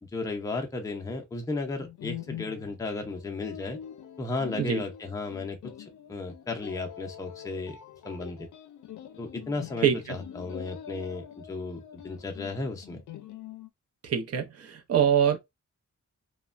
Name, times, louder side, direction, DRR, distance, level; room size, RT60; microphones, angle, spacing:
voice 1, 0.0-3.8 4.2-5.6 6.1-7.8 8.0-8.5 9.2-13.0, left 3 dB, 10° left, 0.4 m, -34 dB
sound 1, 1.8-13.7, left 11 dB, 85° left, 0.5 m, -44 dB
voice 2, 14.0-15.4, right 8 dB, 60° right, 0.6 m, -24 dB
3.0 x 2.1 x 2.4 m
wide cardioid pair, 175°, 29 cm